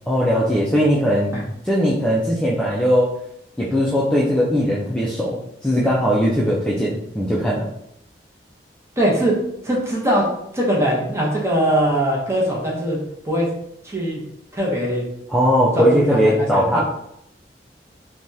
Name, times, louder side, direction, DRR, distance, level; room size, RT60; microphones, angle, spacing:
voice 1, 0.1-1.4 1.6-3.1 3.6-7.7 15.3-16.8, equal, 5° left, -6 dB, 0.4 m, -19 dB
voice 2, 9.0-9.3 9.6-10.3 10.5-13.0 13.2-13.5 13.8-14.2 14.5-15.0 15.7-16.8, equal, 15° right, -3 dB, 0.7 m, -21 dB
3.3 x 2.3 x 2.6 m, 0.76 s
head